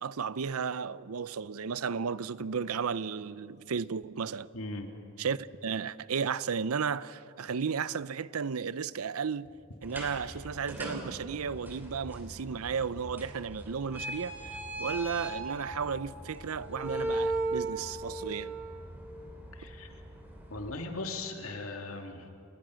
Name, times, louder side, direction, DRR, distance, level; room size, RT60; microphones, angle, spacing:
voice 1, 0.0-4.5 5.2-9.5 9.8-14.4 14.8-18.6, right 6 dB, 85° right, 0.6 m, -34 dB
voice 2, 4.5-4.9 19.5-19.9 20.5-22.3, left 2 dB, 75° left, 2.4 m, -38 dB
sound 1, 9.8-20.7, right 2 dB, 10° right, 3.5 m, -38 dB
29.5 x 19.5 x 6.4 m
head